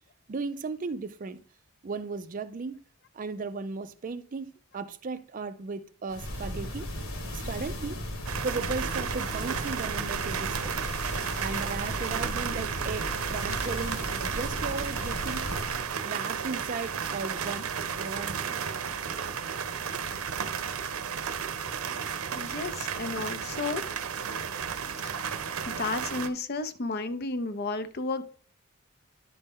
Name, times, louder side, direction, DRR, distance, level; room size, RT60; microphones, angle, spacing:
voice 1, 0.3-1.4 1.8-2.8 3.1-6.9 7.3-8.0 8.4-10.7 11.4-15.5 16.0-18.6, right 4 dB, 35° right, 0.4 m, -36 dB
sound 1, 6.1-15.9, equal, 65° left, 1.4 m, -36 dB
sound 2, 8.3-26.3, right 7 dB, 75° right, 0.7 m, -33 dB
voice 2, 22.3-23.8 25.0-25.3 25.6-28.2, left 3 dB, 45° left, 0.6 m, -33 dB
10.5 x 4.3 x 3.6 m
head